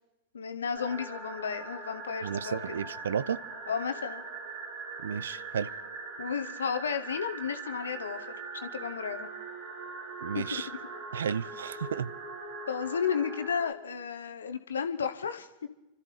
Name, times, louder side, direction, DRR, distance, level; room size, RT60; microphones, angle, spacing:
voice 1, 0.3-2.8 3.7-4.2 6.2-8.3 8.5-9.3 10.3-10.8 12.7-15.7, left 7 dB, 70° left, 9 dB, 1.0 m, -33 dB
sound 1, 0.7-13.7, right 4 dB, 50° right, 2.4 m, -41 dB
voice 2, 2.2-3.4 5.0-5.7 10.2-10.7 11.1-12.1, right 7 dB, 65° right, 20 dB, 0.5 m, -33 dB
29.5 x 13.0 x 3.3 m, 1.0 s
figure-of-eight pair, 90°, 0 cm